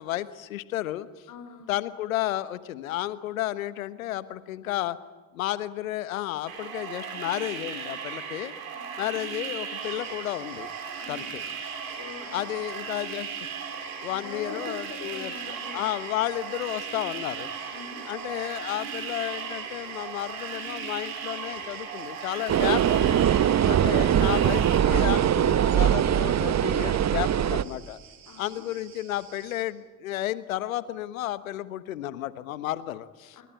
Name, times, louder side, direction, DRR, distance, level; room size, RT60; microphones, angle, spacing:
voice 1, 0.0-1.3 1.7-5.0 5.3-8.5 9.0-10.7 11.1-11.4 12.3-13.3 14.0-17.5 18.0-23.2 23.7-28.0 28.4-33.4, left 14 dB, 85° left, 15 dB, 1.3 m, -32 dB
voice 2, 1.3-1.9 8.7-9.2 11.0-11.4 11.8-12.5 14.1-15.9 17.7-18.0 23.5-24.3 28.3-28.6 33.3-33.4, left 5 dB, 55° left, 4 dB, 4.0 m, -44 dB
sound 1, 6.5-24.8, right 6 dB, 85° right, 3.6 m, -37 dB
sound 2, 9.8-29.6, right 9 dB, 60° right, 7.0 m, -52 dB
sound 3, 22.5-27.6, right 10 dB, 40° right, 1.1 m, -22 dB
28.0 x 22.5 x 9.0 m, 1.3 s
hypercardioid pair, 55°, 40 cm